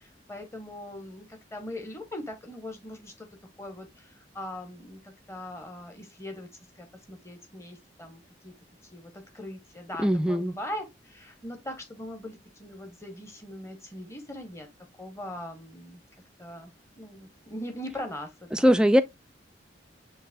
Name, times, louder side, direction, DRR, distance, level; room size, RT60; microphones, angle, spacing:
voice 1, 0.0-3.3 3.6-6.5 6.8-8.5 8.9-14.7 15.0-16.0 16.4-16.7 17.0-18.7, left 1 dB, 15° left, 0.9 m, -41 dB
voice 2, 10.0-10.5 18.5-19.0, equal, 5° right, 0.3 m, -20 dB
6.6 x 2.9 x 2.4 m
head